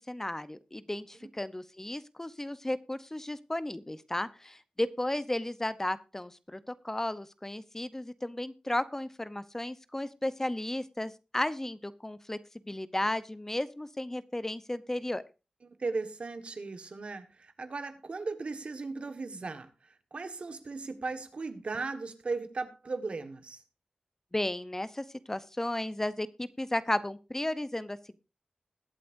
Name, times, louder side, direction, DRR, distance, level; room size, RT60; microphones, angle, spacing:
voice 1, 0.1-12.4 12.7-15.2 24.3-28.2, left 1 dB, 20° left, 0.8 m, -34 dB
voice 2, 15.6-23.6, right 3 dB, 65° right, 1.5 m, -37 dB
21.0 x 8.3 x 2.6 m
wide cardioid pair, 60°, 2 cm